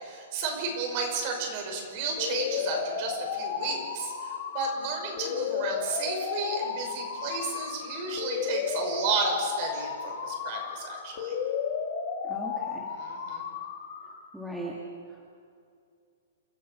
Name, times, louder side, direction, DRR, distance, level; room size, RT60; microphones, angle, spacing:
voice 1, 0.0-4.1 4.5-11.3 13.0-13.4, right 4 dB, 35° right, 2 dB, 5.7 m, -32 dB
sound 1, 2.2-14.2, left 7 dB, 35° left, 2.7 m, -33 dB
voice 2, 12.2-12.9 14.3-14.8 15.1-15.3, right 1 dB, 5° right, -4 dB, 1.9 m, -39 dB
29.0 x 14.0 x 7.0 m, 2.3 s
hypercardioid pair, 170°, 0 cm